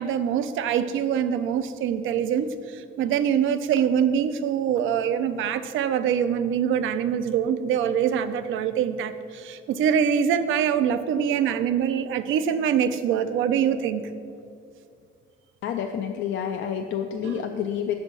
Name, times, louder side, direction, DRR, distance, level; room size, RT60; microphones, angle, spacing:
voice 1, 0.0-14.0 17.2-17.5, right 8 dB, 80° right, 11 dB, 0.4 m, -24 dB
voice 2, 15.6-17.9, left 8 dB, 75° left, 5 dB, 0.4 m, -28 dB
5.9 x 5.6 x 5.4 m, 2.4 s
cardioid pair, 90°, 20 cm